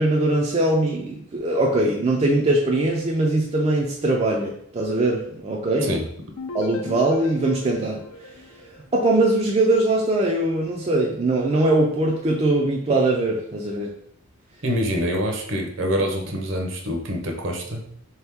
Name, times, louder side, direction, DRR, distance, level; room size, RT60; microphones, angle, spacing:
voice 1, 0.0-5.9 6.5-8.0 8.9-13.9, right 2 dB, 30° right, -2 dB, 0.4 m, -21 dB
sound 1, 6.4-9.3, left 2 dB, 75° left, 0.6 m, -37 dB
voice 2, 14.6-17.8, equal, 60° right, 2 dB, 0.7 m, -25 dB
3.9 x 2.9 x 3.5 m, 0.67 s
head